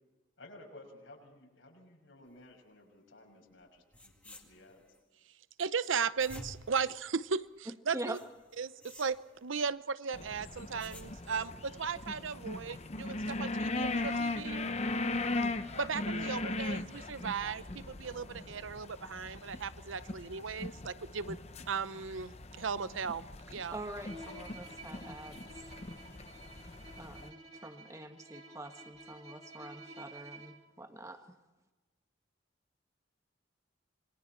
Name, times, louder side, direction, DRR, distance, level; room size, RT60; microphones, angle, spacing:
voice 1, 0.4-4.8, left 2 dB, 75° left, 0 dB, 6.2 m, -55 dB
sound 1, 3.6-3.7 3.9-5.0 5.9-7.6 8.1-9.7 10.4-11.5, left 1 dB, 5° left, 2.1 m, -52 dB
voice 2, 5.6-8.2 8.6-14.7 15.8-21.4 21.7-23.7, right 5 dB, 80° right, 15 dB, 0.7 m, -36 dB
voice 3, 7.7-8.2 23.7-25.4 27.0-31.2, right 1 dB, 15° right, 6 dB, 1.4 m, -44 dB
sound 2, 10.1-27.3, left 2 dB, 35° left, 0.8 m, -39 dB
Bowed string instrument, 24.0-30.7, right 1 dB, 30° right, 3.0 m, -51 dB
27.0 x 22.5 x 4.5 m, 1.2 s
head